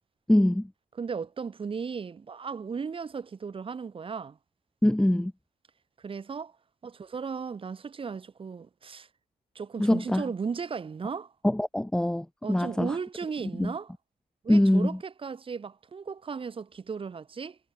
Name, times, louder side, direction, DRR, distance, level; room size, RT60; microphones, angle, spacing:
voice 1, 0.3-0.7 4.8-5.3 9.8-10.2 11.4-13.0 13.6-13.7 14.5-15.0, left 1 dB, 5° left, 1.7 m, -23 dB
voice 2, 1.0-4.4 6.0-6.5 6.8-9.1 9.5-11.3 12.4-13.9 14.4-17.6, right 5 dB, 30° right, 6.8 m, -36 dB
cardioid pair, 110°, 17 cm